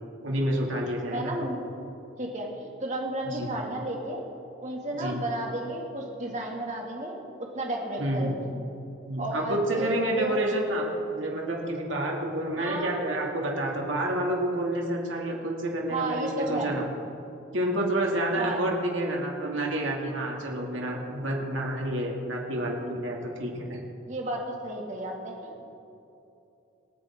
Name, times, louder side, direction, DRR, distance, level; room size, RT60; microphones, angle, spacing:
voice 1, 0.2-1.3 3.2-3.5 5.0-5.2 8.0-8.4 9.0-16.8 17.5-23.8, right 1 dB, 75° right, -1 dB, 2.4 m, -29 dB
voice 2, 1.1-1.6 2.2-4.2 4.6-7.1 7.5-8.5 9.2-9.9 10.2-10.4 12.6-13.0 15.9-16.7 18.4-18.6 24.1-25.6, right 1 dB, 40° right, -1 dB, 2.2 m, -32 dB
26.5 x 9.4 x 3.7 m, 2.8 s
head